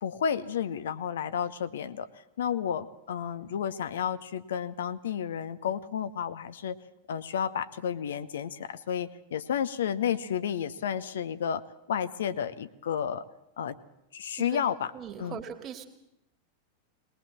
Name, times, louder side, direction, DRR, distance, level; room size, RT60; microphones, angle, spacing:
voice 1, 0.0-2.1 2.4-6.8 7.1-11.6 11.9-13.2 13.6-13.8 14.1-14.9 15.2-15.4, left 8 dB, 60° left, 12 dB, 0.9 m, -31 dB
voice 2, 14.9-15.9, right 8 dB, 30° right, 5 dB, 2.4 m, -40 dB
20.5 x 20.0 x 7.4 m, 0.83 s
figure-of-eight pair, 90°, 0 cm